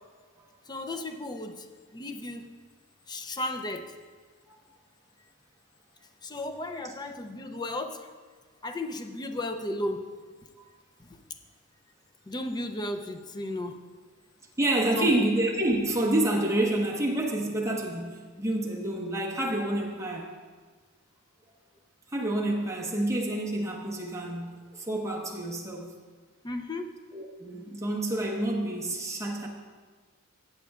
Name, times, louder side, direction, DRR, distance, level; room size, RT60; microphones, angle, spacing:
voice 1, 0.7-1.7 1.9-2.5 3.1-3.9 6.2-8.1 8.6-10.1 11.0-11.2 12.3-13.8 15.0-15.1 26.4-26.9, left 1 dB, 20° left, 6 dB, 0.5 m, -34 dB
voice 2, 14.6-20.3 22.1-25.9 27.1-29.5, right 1 dB, 15° right, -3 dB, 1.2 m, -28 dB
15.5 x 7.8 x 2.4 m, 1.5 s
head